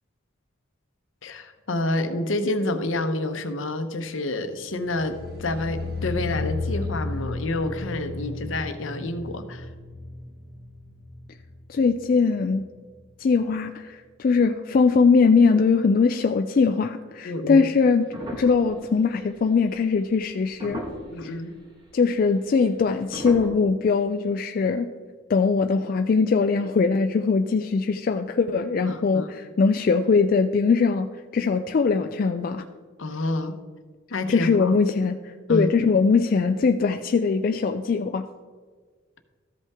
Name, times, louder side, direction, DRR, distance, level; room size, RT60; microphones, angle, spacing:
voice 1, 1.2-9.7 17.2-17.7 21.1-21.5 28.9-29.3 33.0-33.6 34.1-34.7 35.5-35.7, left 2 dB, 75° left, 8 dB, 0.8 m, -28 dB
sound 1, 4.7-11.8 12.1-12.6 12.9-13.0, left 3 dB, 50° right, 2.7 m, -34 dB
voice 2, 11.7-12.6 13.2-20.8 21.2-21.3 21.9-24.9 25.3-31.1 31.3-32.6 34.3-38.3, left 4 dB, 45° left, 7 dB, 0.3 m, -21 dB
Tabletop clock ticking speed ramp down (followup), 18.1-19.4 20.2-20.3 20.6-21.2 22.0-22.1 23.1-23.5, equal, 20° right, 1.3 m, -35 dB
13.5 x 5.5 x 3.5 m, 1.5 s
head